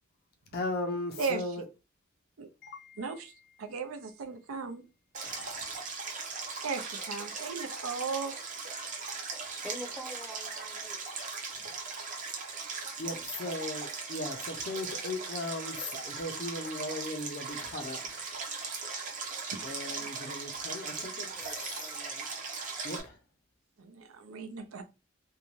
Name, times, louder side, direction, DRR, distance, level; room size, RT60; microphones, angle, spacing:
voice 1, 0.5-1.6 2.6-3.3 5.2-5.8 8.7-8.9 13.0-18.3 19.6-21.3 22.8-23.2, left 2 dB, 45° left, 0.5 m, -38 dB
voice 2, 3.0-3.3 3.6-4.8 6.6-8.3 23.8-24.8, right 5 dB, 85° right, 0.6 m, -36 dB
Stream, 5.1-23.0, right 4 dB, 40° right, 0.6 m, -39 dB
voice 3, 9.6-11.0 20.9-21.1 21.3-22.3, equal, ahead, 0.6 m, -45 dB
2.6 x 2.2 x 3.1 m
head